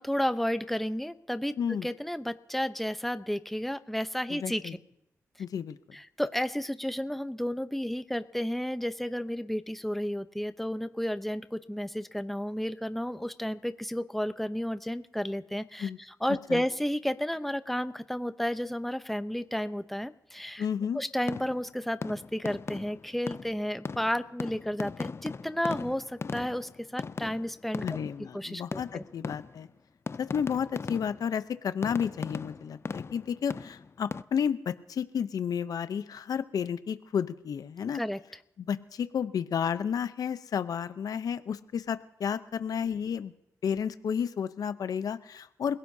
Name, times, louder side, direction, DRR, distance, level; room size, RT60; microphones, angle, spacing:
voice 1, 0.0-4.6 5.9-20.7 20.9-27.8 28.2-29.0 37.9-38.2, equal, 5° left, 11 dB, 0.8 m, -32 dB
voice 2, 4.3-4.8 5.4-5.8 15.8-16.0 16.5-16.6 20.6-21.0 27.8-29.7 30.2-38.0 38.6-43.3 43.6-45.8, left 7 dB, 75° left, 12 dB, 0.7 m, -32 dB
sound 1, 21.3-21.7 22.0-28.3 28.7-29.8 30.1-31.4 31.8-34.2, left 4 dB, 40° left, 0.5 m, -39 dB
30.0 x 16.5 x 2.8 m, 0.82 s
cardioid pair, 55°, 6 cm